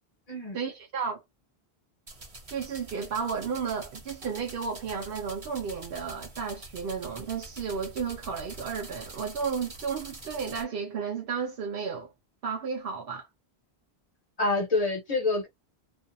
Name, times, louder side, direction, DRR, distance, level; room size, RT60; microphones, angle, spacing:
voice 1, 0.5-1.2 2.5-12.1 12.4-13.3, right 6 dB, 65° right, 0.8 m, -33 dB
sound 1, 2.1-10.6, right 2 dB, 35° right, 0.9 m, -45 dB
voice 2, 14.4-15.5, left 3 dB, 40° left, 1.1 m, -27 dB
2.5 x 2.4 x 2.6 m
omnidirectional pair, 1.1 m